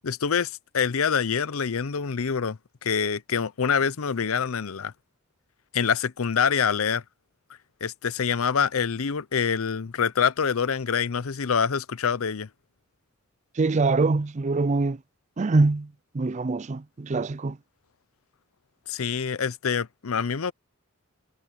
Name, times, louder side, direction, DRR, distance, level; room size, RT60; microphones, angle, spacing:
voice 1, 0.0-4.9 5.7-7.0 7.8-12.5 18.9-20.5, left 6 dB, 85° left, 0.6 m, -26 dB
voice 2, 13.6-15.0 15.4-17.6, right 3 dB, 35° right, 0.4 m, -24 dB
head